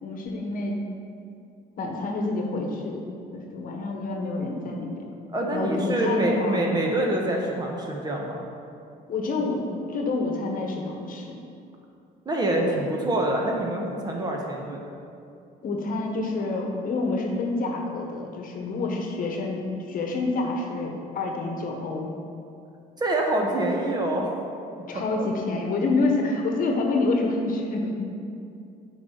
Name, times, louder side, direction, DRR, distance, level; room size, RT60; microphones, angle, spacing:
voice 1, 0.0-0.8 1.8-3.0 3.3-5.1 5.5-6.7 9.1-9.6 9.9-11.3 12.6-12.8 15.6-22.1 24.9-28.1, left 3 dB, 55° left, 1 dB, 1.1 m, -28 dB
voice 2, 5.3-8.4 12.2-14.9 23.0-24.4 25.1-25.3, right 1 dB, 25° right, 0 dB, 1.1 m, -26 dB
8.9 x 5.2 x 3.9 m, 2.5 s
cardioid pair, 110°, 17 cm